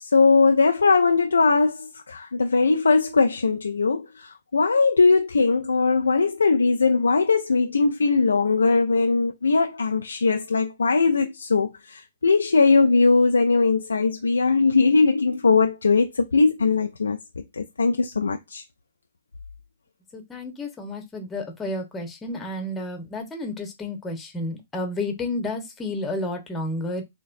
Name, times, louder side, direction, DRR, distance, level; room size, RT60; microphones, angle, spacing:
voice 1, 0.1-17.2 17.6-18.6, left 4 dB, 80° left, 0.4 m, -20 dB
voice 2, 20.1-27.0, left 2 dB, 15° left, 1.1 m, -31 dB
4.2 x 2.9 x 2.6 m
hypercardioid pair, 125°, 0 cm